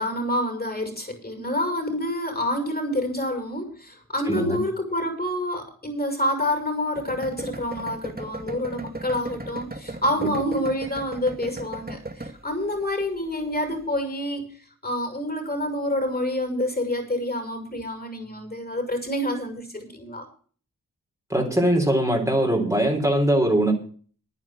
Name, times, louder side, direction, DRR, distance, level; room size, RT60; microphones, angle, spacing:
voice 1, 0.0-14.5 14.8-20.3, left 1 dB, 25° left, 6 dB, 6.2 m, -27 dB
voice 2, 4.3-4.6 10.2-10.3 21.3-23.7, right 1 dB, 10° right, 0 dB, 4.0 m, -21 dB
sound 1, 6.9-13.9, right 2 dB, 25° right, 2.0 m, -37 dB
10.0 x 9.6 x 7.5 m, 0.43 s
cardioid pair, 45°, 35 cm